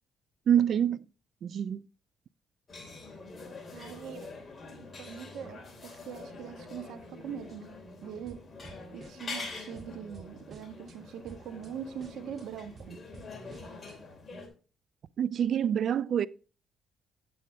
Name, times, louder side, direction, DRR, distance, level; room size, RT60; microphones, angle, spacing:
voice 1, 0.5-1.0 1.4-1.8 15.2-16.3, right 9 dB, 60° right, 0.4 m, -26 dB
sound 1, 2.7-14.5, left 3 dB, 30° left, 3.0 m, -45 dB
voice 2, 3.7-4.4 5.0-8.4 8.9-13.1, right 8 dB, 80° right, 1.4 m, -42 dB
sound 2, 8.2-9.5 9.7-11.0 11.2-11.7 12.0-14.0, right 3 dB, 40° right, 2.4 m, -52 dB
9.1 x 8.5 x 3.3 m
cardioid pair, 90°, 0 cm